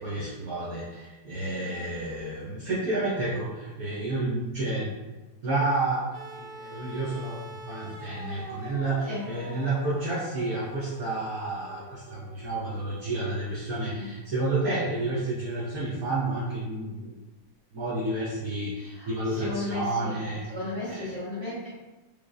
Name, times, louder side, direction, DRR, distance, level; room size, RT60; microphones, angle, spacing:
voice 1, 0.0-4.9 5.4-17.2 17.7-20.4 20.9-21.1, right 2 dB, 60° right, -9 dB, 1.1 m, -30 dB
sound 1, 6.1-14.3 15.5-15.6, right 2 dB, 80° right, 0.7 m, -45 dB
voice 2, 18.9-21.7, left 2 dB, 15° right, -9 dB, 1.0 m, -35 dB
4.7 x 2.0 x 2.6 m, 1.1 s
omnidirectional pair, 2.2 m